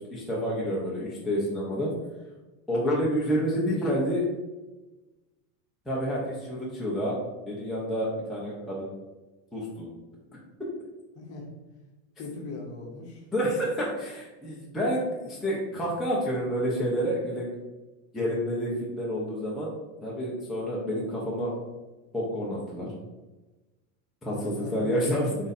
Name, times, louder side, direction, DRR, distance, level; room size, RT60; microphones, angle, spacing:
voice 1, 0.1-1.9 2.7-4.2 5.9-7.2 7.5-8.9 9.5-9.9 13.3-17.5 18.1-19.7 20.0-21.5 22.1-22.9 24.2-25.3, equal, ahead, -7 dB, 0.6 m, -29 dB
voice 2, 12.2-13.2 24.3-25.0, left 3 dB, 35° left, 0 dB, 0.9 m, -39 dB
4.6 x 2.7 x 4.0 m, 1.1 s
supercardioid pair, 140°, 42 cm